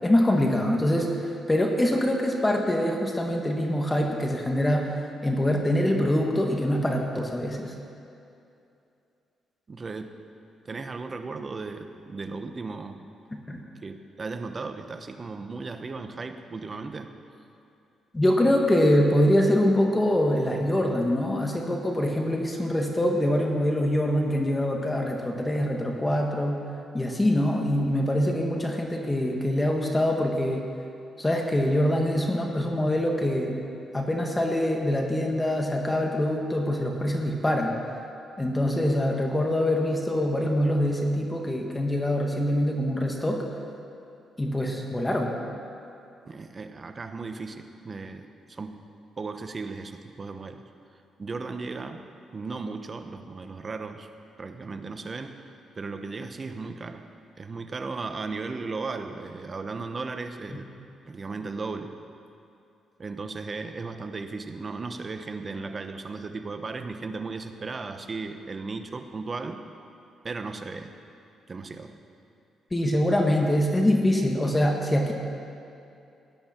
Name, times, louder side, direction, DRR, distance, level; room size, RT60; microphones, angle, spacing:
voice 1, 0.0-1.2 1.5-5.0 5.2-7.7 13.5-13.6 18.1-26.6 26.9-30.7 31.2-33.6 33.9-37.8 38.4-43.5 44.4-45.3 72.7-75.1, left 1 dB, 20° left, 1 dB, 1.7 m, -24 dB
voice 2, 9.7-10.2 10.6-13.0 13.8-17.1 46.2-48.8 49.2-50.7 51.2-52.1 52.3-54.1 54.4-57.1 57.4-60.7 61.0-62.0 63.0-69.6 70.2-71.0 71.5-72.0, right 4 dB, 35° right, 8 dB, 1.0 m, -36 dB
17.5 x 11.0 x 4.5 m, 2.6 s
cardioid pair, 80°, 0 cm